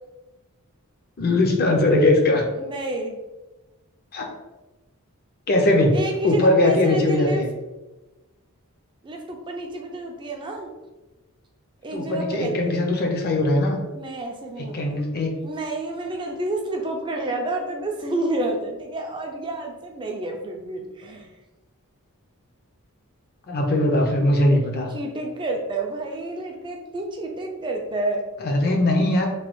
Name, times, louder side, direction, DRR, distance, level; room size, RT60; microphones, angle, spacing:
voice 1, 1.2-2.4 4.1-4.3 5.5-5.9 6.2-7.5 11.9-13.8 14.6-15.3 23.5-24.9 28.4-29.3, left 1 dB, 45° left, 2 dB, 0.5 m, -20 dB
voice 2, 2.6-3.2 5.9-7.4 9.0-10.7 11.8-12.8 14.0-15.0 15.4-21.3 24.9-28.2, right 2 dB, 20° right, 2 dB, 0.3 m, -29 dB
3.1 x 2.2 x 3.0 m, 1.1 s
head